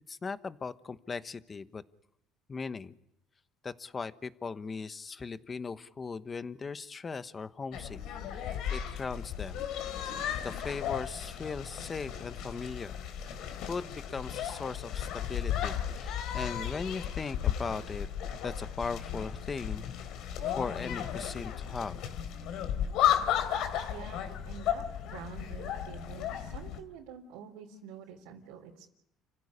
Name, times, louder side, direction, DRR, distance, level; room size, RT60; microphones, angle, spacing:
voice 1, 0.1-1.8 2.5-2.9 3.6-8.0 8.3-9.6 10.4-13.0 13.7-18.1 18.4-19.9 20.5-22.0, left 5 dB, 25° left, 12 dB, 1.2 m, -38 dB
sound 1, 7.7-26.8, left 10 dB, 70° left, 3.3 m, -34 dB
voice 2, 23.9-24.9 25.1-28.9, right 7 dB, 90° right, -2 dB, 3.9 m, -47 dB
30.0 x 16.5 x 10.0 m, 0.80 s
cardioid pair, 110°, 0 cm